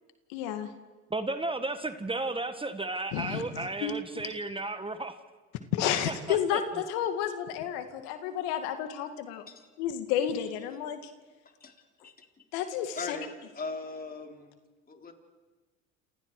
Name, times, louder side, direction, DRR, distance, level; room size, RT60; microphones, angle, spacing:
voice 1, 0.3-0.7 3.1-3.9 5.7-9.4 9.8-11.0 12.5-13.2, left 10 dB, 75° left, 8 dB, 2.2 m, -31 dB
voice 2, 1.1-5.2 6.1-6.6, right 2 dB, 15° right, 9 dB, 1.6 m, -34 dB
voice 3, 12.9-14.5 14.9-15.1, left 3 dB, 25° left, 3 dB, 4.0 m, -40 dB
28.5 x 28.5 x 4.9 m, 1.2 s
hypercardioid pair, 75°, 36 cm